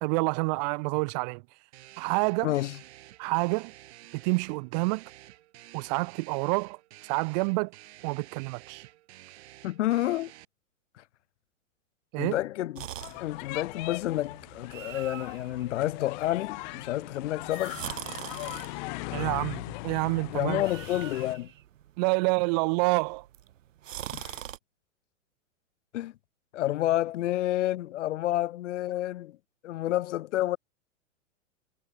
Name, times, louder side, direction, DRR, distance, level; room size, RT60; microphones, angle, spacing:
voice 1, 0.0-1.4 2.0-2.5 3.2-3.7 4.1-5.0 5.7-6.8 7.0-7.7 8.0-8.9 12.1-12.4 19.1-20.6 22.0-23.3, right 31 dB, 30° right, 0.9 m, -28 dB
sound 1, 1.7-10.4, right 16 dB, 55° right, 6.4 m, -51 dB
voice 2, 2.4-2.8 9.6-10.3 12.2-12.9 13.2-17.8 20.3-21.5 24.1-24.4 25.9-26.1 26.5-29.4 29.6-30.6, left 14 dB, 65° left, 0.6 m, -29 dB
sound 2, 12.7-24.6, right 12 dB, 70° right, 2.1 m, -44 dB
sound 3, 13.0-21.4, left 27 dB, 35° left, 1.0 m, -39 dB
hypercardioid pair, 145°, 40 cm